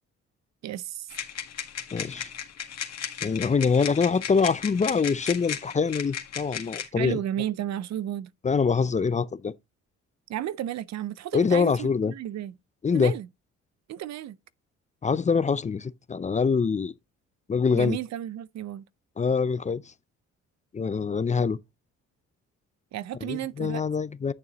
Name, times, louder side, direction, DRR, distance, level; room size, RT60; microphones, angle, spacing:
voice 1, 0.6-1.1 7.0-8.3 10.3-12.5 12.9-13.3 13.9-14.4 17.7-18.9 22.9-23.8, right 12 dB, 65° right, 0.6 m, -33 dB
sound 1, 1.1-6.9, left 8 dB, 60° left, 1.9 m, -36 dB
voice 2, 1.9-2.3 3.2-7.2 8.4-9.5 11.3-12.1 12.8-13.1 15.0-16.9 17.5-18.0 19.2-19.8 20.7-21.6 23.2-24.3, left 5 dB, 25° left, 0.5 m, -24 dB
11.0 x 6.7 x 3.0 m
cardioid pair, 90°, 30 cm